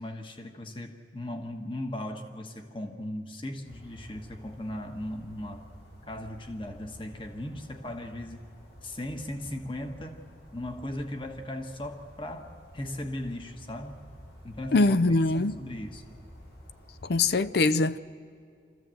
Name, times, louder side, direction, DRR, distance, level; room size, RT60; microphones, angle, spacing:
voice 1, 0.0-5.7 6.1-8.5 8.8-10.2 10.5-14.1 14.4-16.0, left 1 dB, 25° left, 1.3 m, -38 dB
sound 1, 3.6-17.4, equal, 80° left, 5.2 m, -51 dB
voice 2, 14.7-15.6 17.1-18.0, left 3 dB, 60° left, 0.5 m, -23 dB
25.5 x 14.5 x 7.7 m
head